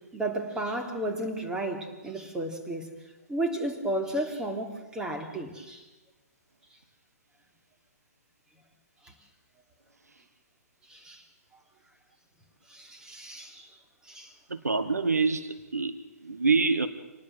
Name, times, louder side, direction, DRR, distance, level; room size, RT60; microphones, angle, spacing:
voice 1, 0.0-2.9 3.3-5.9 9.0-9.1 10.8-11.2 11.5-11.6 12.7-13.8 14.0-14.3 14.6-14.7, right 1 dB, 10° right, 3 dB, 3.2 m, -33 dB
voice 2, 14.5-16.9, right 4 dB, 80° right, 11 dB, 1.3 m, -26 dB
26.5 x 19.5 x 7.7 m, 1.1 s
figure-of-eight pair, 120°, 8 cm